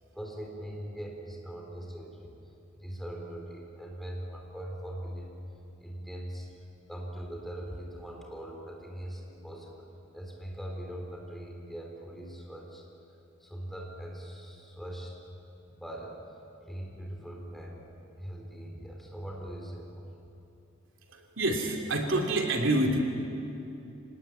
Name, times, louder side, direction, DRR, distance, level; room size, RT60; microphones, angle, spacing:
voice 1, 0.1-2.4 2.7-5.4 5.8-12.8 13.4-15.1 15.7-16.2 16.6-17.9 18.2-20.0, right 1 dB, ahead, -1 dB, 3.9 m, -41 dB
voice 2, 21.1-23.0, right 1 dB, 75° right, 2 dB, 2.9 m, -27 dB
26.5 x 19.0 x 9.2 m, 2.9 s
head